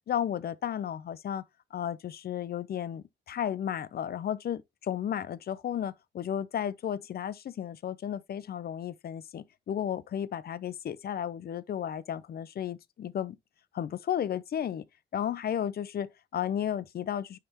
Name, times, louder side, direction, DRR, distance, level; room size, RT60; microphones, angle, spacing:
voice 1, 0.1-1.4 1.7-13.4 13.7-14.8 15.1-17.4, left 9 dB, 50° left, 0.6 m, -33 dB
9.3 x 3.4 x 2.9 m
cardioid pair, 90°, 20 cm